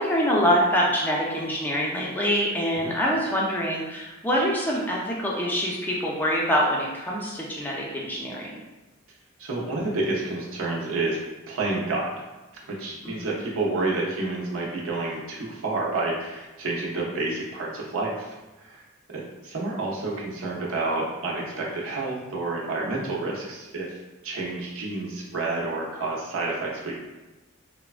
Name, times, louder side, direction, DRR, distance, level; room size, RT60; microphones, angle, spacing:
voice 1, 0.0-8.5 13.0-13.3, equal, 10° left, -3 dB, 0.4 m, -25 dB
voice 2, 9.4-11.2 11.5-12.2 12.7-18.8 19.1-24.0 24.2-26.9, right 2 dB, 85° right, -3 dB, 0.6 m, -29 dB
3.2 x 2.1 x 2.4 m, 1.1 s
head